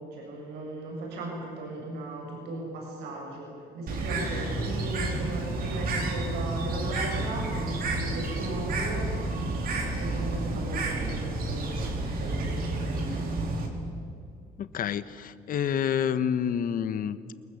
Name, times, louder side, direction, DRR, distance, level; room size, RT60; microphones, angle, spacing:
voice 1, 0.0-9.1 9.6-13.5, right 1 dB, 85° right, -1 dB, 7.4 m, -37 dB
Bird, 3.9-13.7, right 2 dB, 60° right, 4.8 m, -30 dB
voice 2, 14.6-17.3, left 8 dB, 55° left, 13 dB, 1.3 m, -28 dB
28.5 x 20.0 x 8.4 m, 2.4 s
cardioid pair, 110°, 17 cm